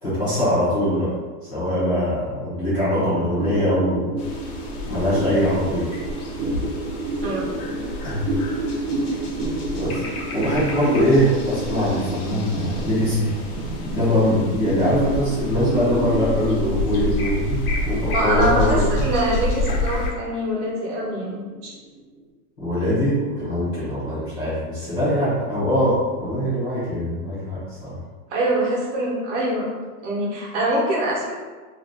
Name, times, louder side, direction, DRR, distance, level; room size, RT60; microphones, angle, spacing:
voice 1, 0.0-1.1 1.5-4.1 4.8-5.9 8.0-8.3 9.8-10.0 10.3-13.3 13.8-19.0 22.6-27.9, equal, 15° left, -14 dB, 0.5 m, -22 dB
sound 1, 3.4-22.1, right 2 dB, 90° right, 0.7 m, -30 dB
sound 2, 4.2-20.1, left 2 dB, 70° left, 0.8 m, -29 dB
voice 2, 7.2-7.8 18.1-21.7 28.3-29.7 30.0-31.3, right 1 dB, 50° right, -4 dB, 0.9 m, -24 dB
2.6 x 2.3 x 3.1 m, 1.4 s
supercardioid pair, 165°, 46 cm